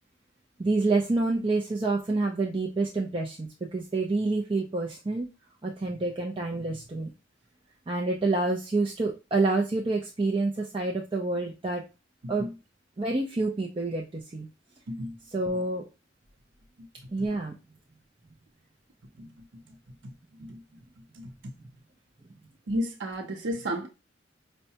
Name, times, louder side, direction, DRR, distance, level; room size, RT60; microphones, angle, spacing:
voice 1, 0.6-5.3 5.6-7.1 7.9-11.8 12.3-12.5 13.0-14.5 15.3-15.8 17.1-17.5, right 2 dB, 30° right, 0.5 m, -28 dB
voice 2, 22.7-23.9, equal, 80° right, 0.6 m, -32 dB
5.4 x 2.2 x 2.8 m
head